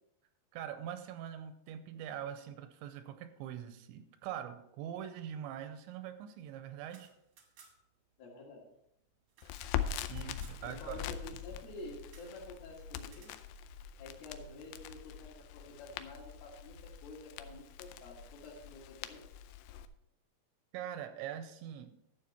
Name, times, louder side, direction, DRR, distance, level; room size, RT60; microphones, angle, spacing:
voice 1, 0.5-7.1 10.1-11.0 20.7-21.9, right 10 dB, 85° right, 10 dB, 2.9 m, -43 dB
sound 1, 6.9-8.0 8.3-8.4 8.6-10.6 12.1-12.4 13.0-13.5, right 6 dB, 65° right, 1.9 m, -61 dB
voice 2, 8.2-8.6 10.6-13.3 14.0-19.2, left 2 dB, 60° left, -2 dB, 3.5 m, -49 dB
Crackle, 9.4-19.9, left 9 dB, 85° left, 2.4 m, -43 dB
11.5 x 7.3 x 4.2 m, 0.80 s
omnidirectional pair, 5.3 m